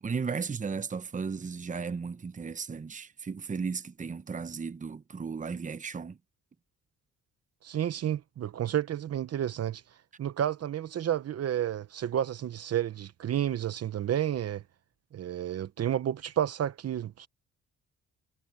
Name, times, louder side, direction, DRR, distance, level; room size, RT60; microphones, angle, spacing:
voice 1, 0.0-6.2, right 5 dB, 25° right, 0.9 m, -35 dB
voice 2, 7.6-9.8 10.2-14.6 15.1-17.3, right 10 dB, 55° right, 0.9 m, -31 dB
cardioid pair, 90°, 30 cm